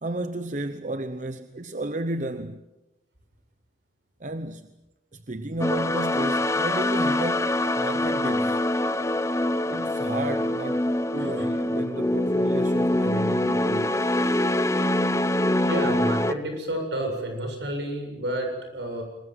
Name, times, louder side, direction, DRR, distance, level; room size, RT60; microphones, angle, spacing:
voice 1, 0.0-2.6 4.2-4.7 5.1-8.6 9.7-14.1, right 2 dB, 40° right, 0.9 m, -33 dB
sound 1, 5.6-16.3, left 1 dB, 15° left, 0.8 m, -24 dB
voice 2, 15.6-19.0, right 1 dB, 70° right, 7.4 m, -30 dB
27.0 x 21.5 x 7.8 m
head